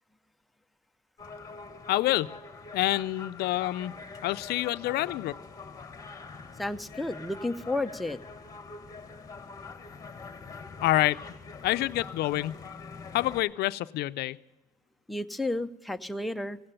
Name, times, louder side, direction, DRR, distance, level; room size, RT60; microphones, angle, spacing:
sound 1, 1.2-13.4, left 4 dB, 20° left, 1.3 m, -44 dB
voice 1, 1.9-2.3 2.7-3.9 4.2-5.4 10.8-11.2 11.6-12.6 13.1-14.4, left 16 dB, 70° left, 15 dB, 0.4 m, -27 dB
voice 2, 6.6-8.2 15.1-16.6, left 2 dB, ahead, 8 dB, 0.5 m, -32 dB
16.5 x 8.7 x 8.8 m, 0.99 s
cardioid pair, 110°, 17 cm